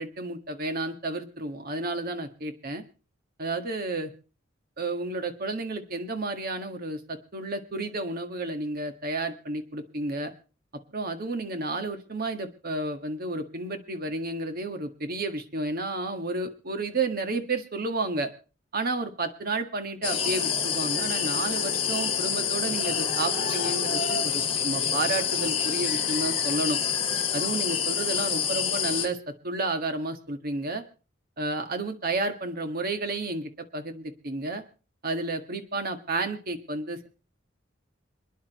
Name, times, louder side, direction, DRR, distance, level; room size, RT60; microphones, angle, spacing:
voice 1, 0.0-2.8 3.4-4.1 4.8-10.3 10.9-18.3 18.7-26.8 27.3-30.8 31.4-34.6 35.0-37.1, right 2 dB, 50° right, 6 dB, 1.7 m, -31 dB
sound 1, 20.0-29.1, left 7 dB, 30° left, 2.2 m, -27 dB
27.5 x 10.0 x 3.1 m, 0.35 s
head